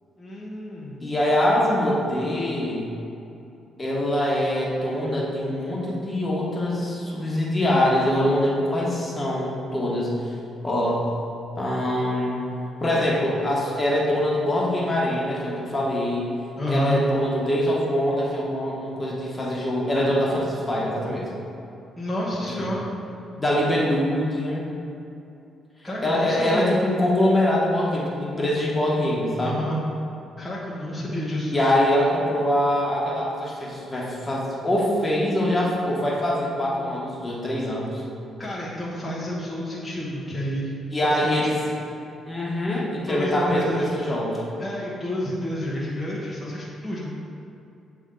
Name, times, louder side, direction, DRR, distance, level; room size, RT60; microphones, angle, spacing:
voice 1, 0.2-1.0 16.6-17.0 22.0-22.9 25.8-26.7 29.4-29.8 30.4-31.5 38.4-40.7 41.0-41.5 43.1-43.9 44.6-47.1, left 1 dB, ahead, -9 dB, 1.1 m, -29 dB
voice 2, 1.0-2.9 3.8-10.3 10.6-11.1 11.6-12.4 12.8-16.3 16.7-21.3 22.4-22.7 23.4-24.6 26.0-29.7 31.5-38.0 40.9-41.6 42.3-44.4, left 1 dB, 20° left, -5 dB, 1.4 m, -24 dB
8.1 x 3.5 x 3.8 m, 2.7 s
cardioid pair, 90°, 0 cm